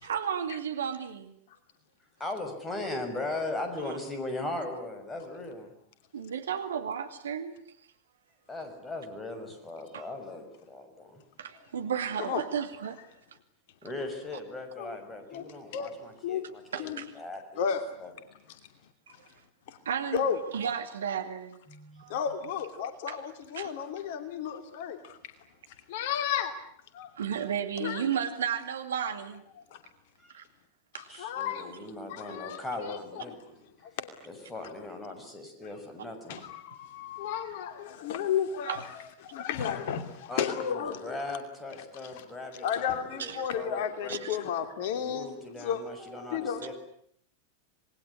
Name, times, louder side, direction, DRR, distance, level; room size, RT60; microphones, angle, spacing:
voice 1, 0.0-1.4 3.9-4.0 4.5-4.6 6.1-7.6 9.9-10.0 11.4-13.0 13.3-13.4 16.7-17.2 19.1-19.3 19.8-20.2 20.5-21.6 22.0-22.2 23.1-23.2 23.6-23.7 27.2-29.4 30.3-30.5 30.9-31.2 38.7-38.8 43.2-43.5 44.1-44.4, right 8 dB, 65° right, 2.4 m, -33 dB
voice 2, 2.2-5.7 8.5-11.2 13.8-17.6 18.0-18.1 21.7-22.0 30.2-30.3 31.1-33.9 34.2-36.3 40.3-44.4 44.9-46.7, left 2 dB, 15° left, 6.6 m, -39 dB
voice 3, 15.3-15.9 16.2-16.4 16.8-17.1 17.6-17.8 19.7-19.8 20.1-20.4 22.1-25.2 25.9-26.5 26.9-27.1 27.8-28.0 29.7-29.8 31.2-31.7 32.1-33.4 33.8-34.1 34.4-34.5 36.3-38.8 39.2-41.2 42.0-42.2 42.6-45.9 46.3-46.6, left 8 dB, 50° left, 2.8 m, -33 dB
27.0 x 21.0 x 9.8 m
figure-of-eight pair, 90°, 0 cm